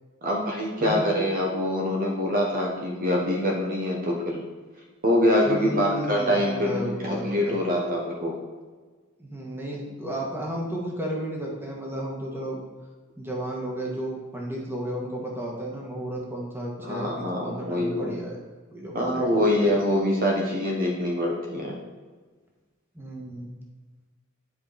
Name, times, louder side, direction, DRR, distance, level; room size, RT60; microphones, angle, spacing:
voice 1, 0.2-4.4 5.0-8.4 16.8-18.2 18.9-21.8, left 1 dB, 45° right, -1 dB, 1.2 m, -25 dB
voice 2, 5.4-7.6 9.2-12.6 13.2-18.4 18.7-19.8 22.9-23.5, equal, 10° right, -3 dB, 1.6 m, -33 dB
10.5 x 4.9 x 4.2 m, 1.4 s
head